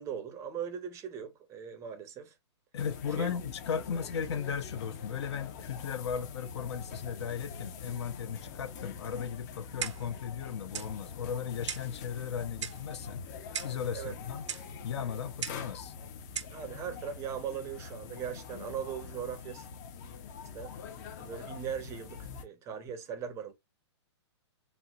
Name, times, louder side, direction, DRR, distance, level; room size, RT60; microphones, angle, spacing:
voice 1, 0.0-2.3 3.2-3.3 13.9-14.2 16.5-19.7 20.5-20.7 21.2-23.5, right 8 dB, 20° right, 0.5 m, -39 dB
voice 2, 2.7-13.2 13.6-14.5 14.8-15.9, left 7 dB, 65° left, 0.7 m, -36 dB
sound 1, 2.8-22.4, left 6 dB, 35° left, 0.6 m, -45 dB
Clock, 9.8-10.2 10.7-10.9 11.7-11.9 12.6-12.9 13.5-13.8 14.5-14.7 15.4-15.7 16.4-16.6, right 8 dB, 80° right, 0.6 m, -37 dB
4.3 x 2.1 x 2.3 m
hypercardioid pair, 145°, 15 cm